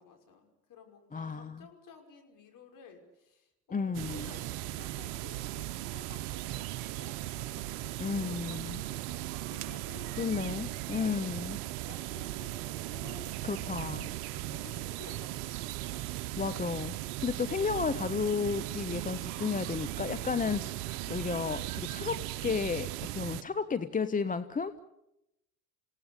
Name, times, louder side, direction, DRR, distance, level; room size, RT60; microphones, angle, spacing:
voice 1, 0.0-10.4 10.9-11.3 11.9-15.5, left 5 dB, 40° left, 4 dB, 5.8 m, -54 dB
voice 2, 1.1-1.6 3.7-4.3 8.0-8.8 10.2-11.6 13.4-14.0 16.4-24.8, left 5 dB, 15° left, 14 dB, 0.9 m, -33 dB
sound 1, 3.9-23.4, right 16 dB, 65° right, 1.0 m, -38 dB
27.5 x 17.5 x 8.1 m, 0.89 s
hypercardioid pair, 75°, 48 cm